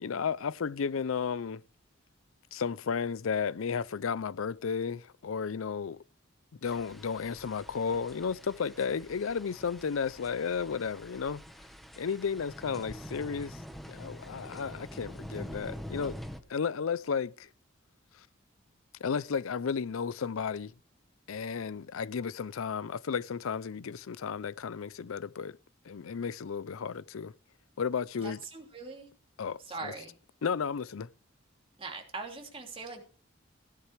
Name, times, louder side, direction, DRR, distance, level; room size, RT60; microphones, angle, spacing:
voice 1, 0.0-1.6 2.5-6.0 6.6-11.4 12.0-13.6 13.9-16.2 16.5-17.5 18.2-18.3 19.0-20.7 21.3-25.6 25.9-27.3 27.8-28.4 29.4-29.9 30.4-31.1, left 6 dB, 85° left, 0.5 m, -33 dB
sound 1, 6.6-16.4, equal, ahead, 1.2 m, -46 dB
voice 2, 28.2-29.1 29.6-30.2 31.8-33.0, right 3 dB, 25° right, 2.9 m, -41 dB
16.5 x 11.0 x 3.3 m
head